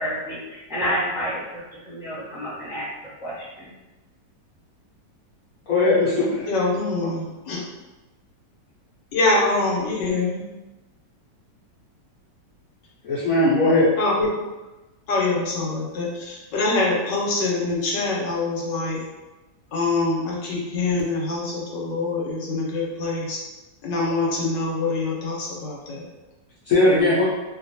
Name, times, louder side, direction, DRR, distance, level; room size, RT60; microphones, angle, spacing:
voice 1, 0.0-2.9 3.2-3.7, equal, 5° right, -9 dB, 0.4 m, -29 dB
voice 2, 5.7-6.5 13.0-13.9 26.7-27.2, left 2 dB, 60° left, -10 dB, 1.1 m, -18 dB
voice 3, 6.5-7.6 9.1-10.4 14.0-14.3 15.1-19.0 19.7-23.4 23.8-26.0, left 3 dB, 80° left, -3 dB, 1.4 m, -24 dB
2.9 x 2.5 x 2.7 m, 1.1 s
omnidirectional pair, 1.9 m